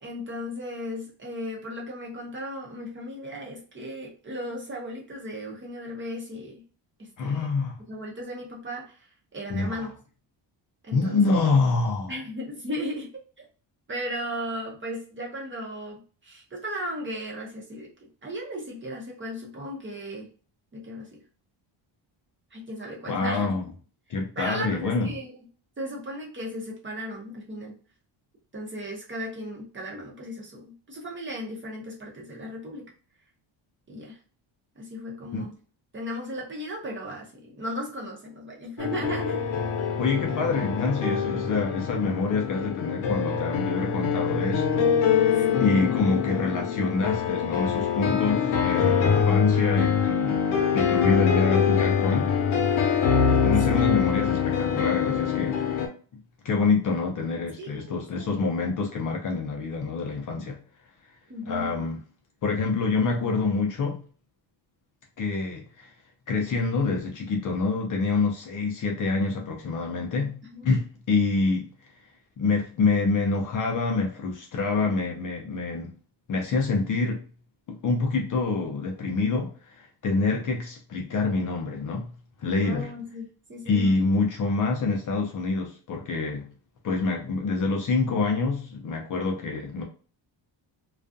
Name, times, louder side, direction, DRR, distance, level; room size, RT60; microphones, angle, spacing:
voice 1, 0.0-6.6 7.0-7.5 7.9-9.9 10.8-11.5 12.1-13.4 13.9-17.9 18.2-20.3 20.7-21.2 22.5-23.6 24.4-25.3 25.8-27.8 28.5-32.9 33.9-34.2 34.8-35.5 35.9-39.4 45.5-46.3 53.7-54.1 57.6-58.4 61.3-61.7 70.5-70.7 82.6-84.0, equal, 25° right, 0.7 m, -36 dB
voice 2, 7.2-7.8 9.5-9.9 10.9-12.1 23.1-23.6 24.1-25.1 35.3-35.4 40.0-50.4 50.7-52.3 53.4-55.8 56.4-60.6 61.5-62.0 62.4-64.0 65.2-65.9 66.3-70.4 70.6-71.7 72.4-75.9 76.3-77.2 77.7-82.1 82.4-82.9 83.7-86.5 86.8-89.8, left 4 dB, 40° left, 0.5 m, -26 dB
sound 1, 38.8-55.9, left 7 dB, 90° left, 0.8 m, -24 dB
2.4 x 2.3 x 2.5 m
cardioid pair, 140°, 48 cm